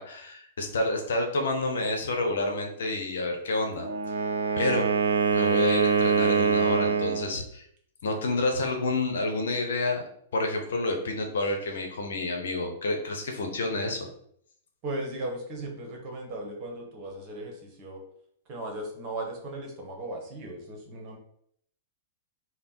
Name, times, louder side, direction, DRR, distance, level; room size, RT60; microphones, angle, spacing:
voice 1, 0.0-4.2 4.6-4.9 5.3-7.6 8.0-10.0 10.3-14.1, left 2 dB, 65° left, 3 dB, 0.7 m, -29 dB
Wind instrument woodwind instrument, 3.7-7.3, right 5 dB, 75° right, 0.5 m, -24 dB
voice 2, 14.8-18.0 18.5-21.2, right 1 dB, 35° right, 1 dB, 1.1 m, -37 dB
3.3 x 2.1 x 4.2 m, 0.67 s
figure-of-eight pair, 100°, 0 cm